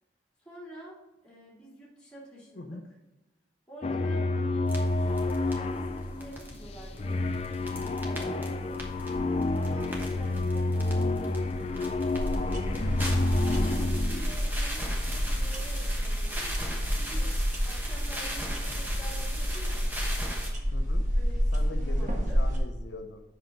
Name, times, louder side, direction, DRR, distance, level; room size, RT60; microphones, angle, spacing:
voice 1, 0.4-2.8 3.7-8.8 9.5-11.5 11.7-12.1 13.6-17.4 17.6-19.9 21.1-22.4, right 1 dB, 5° left, -6 dB, 3.0 m, -48 dB
sound 1, 3.8-14.4, left 2 dB, 35° left, 0.3 m, -29 dB
sound 2, 4.7-20.5, equal, 10° right, 1.1 m, -38 dB
voice 2, 9.6-10.0 12.6-13.0 20.7-21.0 21.5-23.2, left 3 dB, 80° left, 5 dB, 0.7 m, -42 dB
sound 3, 12.1-22.6, equal, 45° right, 1.3 m, -30 dB
7.8 x 5.8 x 3.9 m, 0.99 s
head